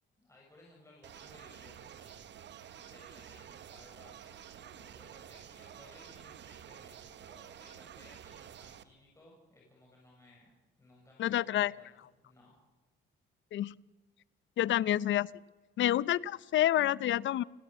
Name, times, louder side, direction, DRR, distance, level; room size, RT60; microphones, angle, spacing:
voice 1, 0.2-12.0 12.2-12.6, left 2 dB, 15° left, -3 dB, 6.8 m, -60 dB
sound 1, 1.0-8.8, right 9 dB, 65° right, 1.2 m, -50 dB
voice 2, 11.2-11.7 13.5-13.7 14.6-15.3 15.8-17.4, left 12 dB, 70° left, 20 dB, 0.6 m, -28 dB
29.5 x 12.5 x 8.1 m, 1.3 s
cardioid pair, 90°, 20 cm